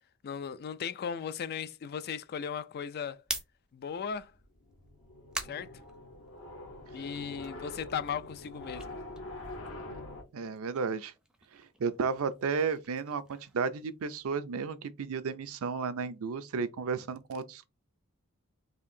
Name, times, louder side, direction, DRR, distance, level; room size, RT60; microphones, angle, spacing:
voice 1, 0.2-3.2 3.7-4.3 5.4-5.7 6.9-9.0, left 7 dB, 45° left, 0.3 m, -37 dB
sound 1, 3.1-6.6 7.0-10.0 10.2-14.4, right 1 dB, 5° right, 0.5 m, -45 dB
sound 2, 4.7-10.2, left 2 dB, 65° left, 1.0 m, -44 dB
voice 2, 10.3-11.1 11.5-17.7, right 5 dB, 70° right, 0.5 m, -33 dB
4.2 x 2.7 x 2.7 m
head